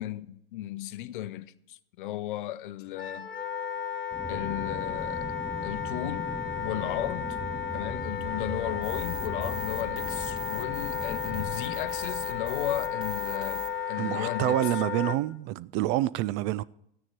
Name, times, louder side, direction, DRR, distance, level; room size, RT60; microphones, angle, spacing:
voice 1, 0.0-3.3 4.3-5.3 5.6-7.4 7.7-14.6, left 13 dB, 60° left, 0.7 m, -35 dB
Wind instrument woodwind instrument, 3.0-15.2, left 8 dB, 80° left, 1.0 m, -33 dB
Aircraft, 4.1-13.6, right 1 dB, 5° left, 1.6 m, -40 dB
sound 1, 8.8-13.7, right 1 dB, 15° right, 2.1 m, -42 dB
voice 2, 14.0-16.6, right 16 dB, 35° right, 0.4 m, -27 dB
14.5 x 9.8 x 4.4 m
figure-of-eight pair, 80°, 29 cm